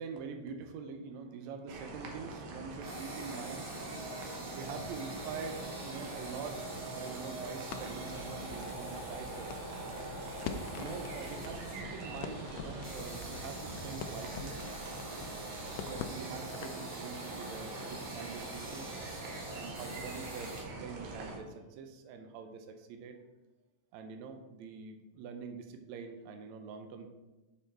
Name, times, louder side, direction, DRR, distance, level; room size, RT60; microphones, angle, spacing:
voice 1, 0.0-3.7 4.0-9.7 10.8-14.6 15.6-18.9 19.5-23.2 23.9-27.1, right 5 dB, 80° right, 6 dB, 1.6 m, -45 dB
sound 1, 1.7-21.4, right 2 dB, 65° right, 2.1 m, -44 dB
sound 2, 2.8-20.6, right 1 dB, 50° right, 3.0 m, -45 dB
Crackle, 7.7-16.9, left 7 dB, 80° left, 2.1 m, -46 dB
7.0 x 5.5 x 4.6 m, 1.1 s
omnidirectional pair, 4.0 m